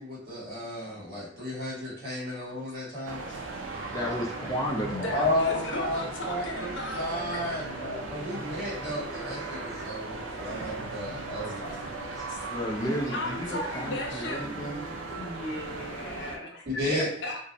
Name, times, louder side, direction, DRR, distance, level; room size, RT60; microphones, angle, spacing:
voice 1, 0.0-3.2 5.1-11.8 16.6-17.1, left 1 dB, 55° right, -8 dB, 1.3 m, -33 dB
sound 1, 3.0-16.4, right 3 dB, 80° right, 0.4 m, -37 dB
voice 2, 3.9-5.1 9.1-9.2 12.2-14.8, equal, 20° left, -1 dB, 0.3 m, -33 dB
voice 3, 4.9-7.7 8.6-8.7 12.0-12.4 12.8-14.6 15.1-17.4, left 2 dB, 70° left, 1 dB, 0.6 m, -36 dB
2.5 x 2.0 x 2.6 m, 0.63 s
head